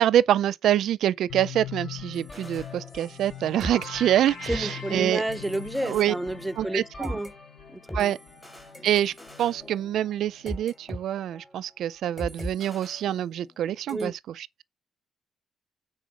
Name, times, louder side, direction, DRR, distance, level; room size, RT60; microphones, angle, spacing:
voice 1, 0.0-5.2 5.8-6.1 6.6-7.1 7.9-8.2 8.8-9.1 9.4-14.6, right 11 dB, 75° right, 0.4 m, -25 dB
sound 1, 1.3-11.1, left 9 dB, 55° left, 3.1 m, -43 dB
sound 2, 2.1-3.3 3.6-7.3 7.9-11.0 11.3-11.6 12.2-13.6 13.9-14.1, equal, 10° left, 3.1 m, -40 dB
sound 3, 2.9-7.6, left 3 dB, 70° left, 2.6 m, -45 dB
voice 2, 4.5-7.3 7.7-8.1 13.9-14.1, right 1 dB, 5° right, 0.5 m, -31 dB
9.3 x 4.3 x 5.0 m
cardioid pair, 90°, 0 cm